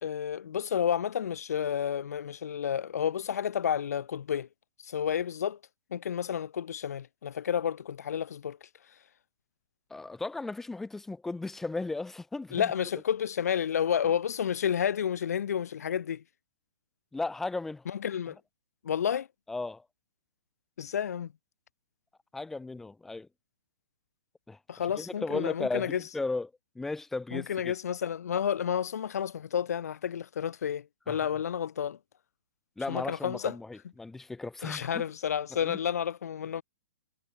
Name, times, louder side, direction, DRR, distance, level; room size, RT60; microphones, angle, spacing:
voice 1, 0.0-4.5 4.8-5.6 5.9-8.6 12.5-16.2 17.9-18.4 18.8-19.3 20.8-21.3 24.7-26.0 27.3-32.0 32.9-33.5 34.6-36.6, left 8 dB, 55° left, 1.4 m, -30 dB
voice 2, 9.9-12.7 17.1-17.8 19.5-19.8 22.3-23.3 24.5-27.7 31.1-31.2 32.8-35.0 35.5-35.8, left 3 dB, 5° left, 2.6 m, -36 dB
hypercardioid pair, 175°, 10 cm